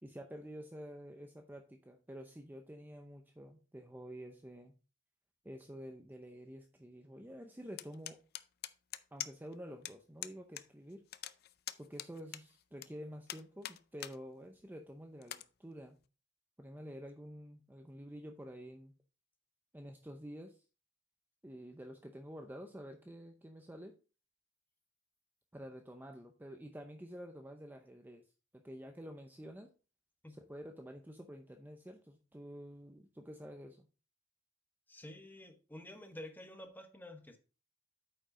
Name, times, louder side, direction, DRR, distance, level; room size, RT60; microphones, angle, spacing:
voice 1, 0.0-4.7 5.4-8.2 9.1-11.0 11.8-16.0 16.6-18.9 19.7-20.6 21.4-23.9 25.5-28.2 28.5-29.7 30.3-33.8, equal, 10° right, 0.7 m, -49 dB
sound 1, 7.8-9.5 9.8-9.9 10.2-10.6 10.9-12.9 13.3-14.2 14.6-14.7 15.2-15.4, left 12 dB, 55° left, 0.5 m, -44 dB
voice 2, 34.9-37.4, left 1 dB, 10° left, 1.1 m, -50 dB
8.7 x 5.2 x 3.8 m
head